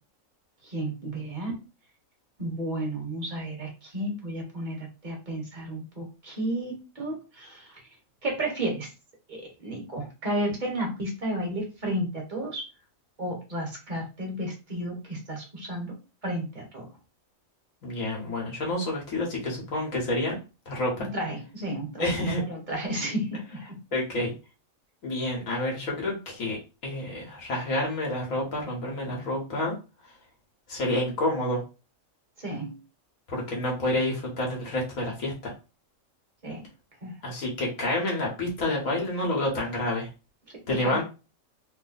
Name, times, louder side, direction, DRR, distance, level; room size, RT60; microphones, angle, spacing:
voice 1, 0.6-1.6 2.4-7.8 8.2-8.9 9.3-12.7 13.2-15.9 16.2-16.9 21.0-23.8 32.4-32.8 36.4-36.6 37.0-37.1 40.7-41.0, right 1 dB, 35° right, 0 dB, 1.3 m, -32 dB
voice 2, 17.8-20.4 20.6-21.1 22.0-22.4 23.9-24.3 25.0-26.6 26.8-29.7 30.0-30.1 30.7-31.6 33.3-35.5 37.2-40.1 40.7-41.0, left 1 dB, 75° left, -2 dB, 1.6 m, -29 dB
3.2 x 2.1 x 3.9 m, 0.31 s
omnidirectional pair, 1.4 m